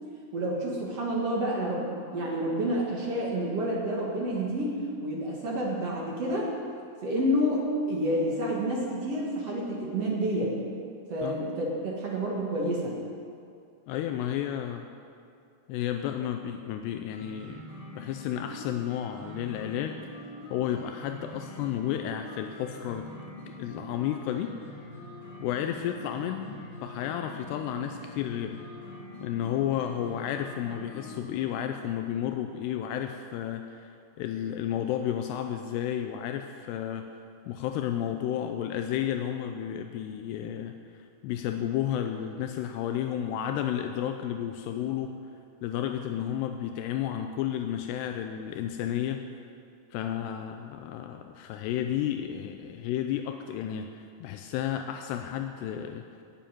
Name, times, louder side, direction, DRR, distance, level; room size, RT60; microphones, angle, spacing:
voice 1, 0.3-6.5 7.0-10.6 11.1-12.9, equal, 55° right, -3 dB, 1.8 m, -29 dB
voice 2, 13.9-14.9 15.7-17.7 17.9-20.0 20.5-23.1 23.6-24.7 25.4-28.6 29.2-37.1 37.5-45.1 45.6-49.2 49.9-56.0, left 10 dB, 85° left, 6 dB, 2.6 m, -32 dB
sound 1, 17.1-31.5, left 1 dB, 45° left, 4.4 m, -44 dB
12.5 x 7.3 x 9.2 m, 2.4 s
omnidirectional pair, 4.9 m